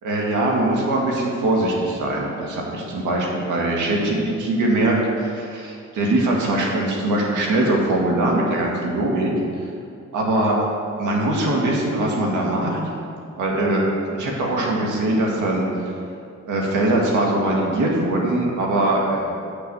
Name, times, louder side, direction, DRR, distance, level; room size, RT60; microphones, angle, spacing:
voice 1, 0.0-9.3 10.1-10.6 11.0-12.8 13.4-13.8 14.1-15.9 16.5-19.3, right 1 dB, 80° right, -1 dB, 1.9 m, -21 dB
7.2 x 7.0 x 6.1 m, 2.5 s
cardioid pair, 90°, 30 cm